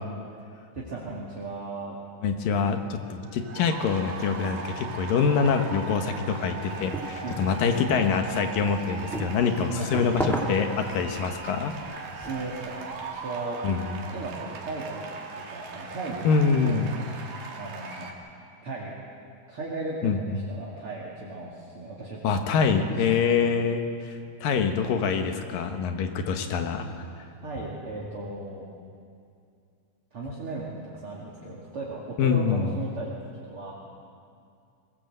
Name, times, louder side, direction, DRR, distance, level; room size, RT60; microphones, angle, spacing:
voice 1, 0.7-1.9 7.2-7.5 9.8-10.0 12.1-13.6 14.1-15.1 15.3-16.3 16.6-16.9 17.6-18.1 18.6-19.0 19.5-22.2 22.7-23.3 27.4-28.6 30.1-33.1 33.4-33.7, right 2 dB, 40° right, -5 dB, 3.0 m, -36 dB
voice 2, 2.2-11.7 13.6-14.1 16.2-16.9 20.0-20.4 22.2-26.9 32.2-32.7, left 5 dB, 75° left, 6 dB, 3.0 m, -25 dB
sound 1, 3.1-18.1, right 4 dB, 75° right, 3.7 m, -39 dB
sound 2, 6.7-13.2, right 1 dB, ahead, 1.5 m, -37 dB
22.0 x 20.0 x 7.9 m, 2.4 s
omnidirectional pair, 4.0 m